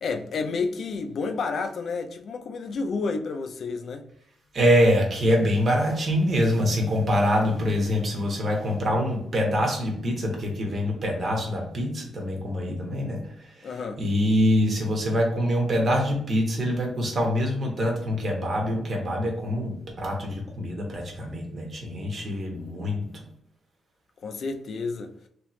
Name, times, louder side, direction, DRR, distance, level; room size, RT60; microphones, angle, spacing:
voice 1, 0.0-4.0 13.6-14.0 22.2-22.3 24.2-25.1, left 4 dB, 65° left, 0.5 m, -30 dB
voice 2, 4.5-13.2 13.6-13.7 14.0-23.2, equal, 50° right, 1.2 m, -25 dB
3.2 x 2.9 x 3.1 m
cardioid pair, 80°, 0 cm